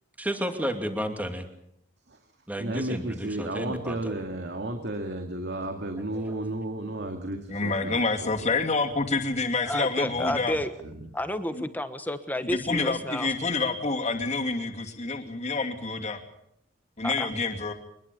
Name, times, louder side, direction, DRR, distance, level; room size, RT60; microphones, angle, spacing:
voice 1, 0.2-1.5 2.5-4.1 6.2-6.3, equal, 10° right, 5 dB, 2.7 m, -32 dB
voice 2, 2.6-8.0 8.3-8.7 10.2-11.1, right 1 dB, 65° right, 5 dB, 2.2 m, -33 dB
voice 3, 7.5-10.6 11.5-11.6 12.4-16.2 17.0-17.7, left 3 dB, 40° left, 3 dB, 2.8 m, -28 dB
voice 4, 9.7-10.7 11.1-13.3 17.0-17.3, left 1 dB, 10° left, 9 dB, 1.2 m, -30 dB
24.5 x 21.0 x 7.0 m, 0.75 s
head